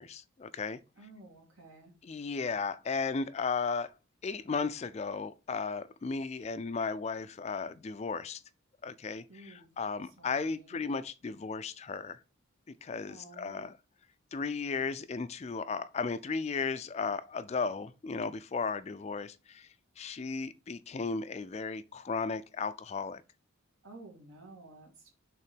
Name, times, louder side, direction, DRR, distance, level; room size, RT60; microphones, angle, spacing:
voice 1, 0.0-0.8 2.0-3.9 4.2-8.4 8.8-12.2 12.8-13.8 14.3-19.7 20.0-23.2, left 4 dB, 30° left, 0.3 m, -35 dB
voice 2, 1.0-1.9 9.3-9.7 10.2-10.8 13.1-13.7 23.8-25.1, right 2 dB, 80° right, 2.3 m, -52 dB
5.5 x 3.7 x 5.2 m
head